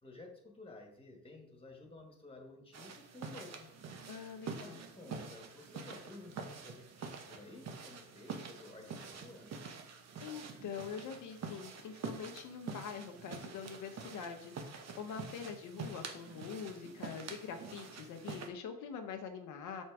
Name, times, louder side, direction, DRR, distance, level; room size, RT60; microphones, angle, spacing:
voice 1, 0.0-3.7 4.6-9.5, left 2 dB, 20° left, 2 dB, 1.7 m, -53 dB
sound 1, 2.7-18.5, right 5 dB, 60° right, 1.1 m, -46 dB
voice 2, 4.1-4.8 10.2-19.8, left 6 dB, 80° left, 5 dB, 0.8 m, -44 dB
6.4 x 4.3 x 4.7 m, 0.73 s
cardioid pair, 90°, 30 cm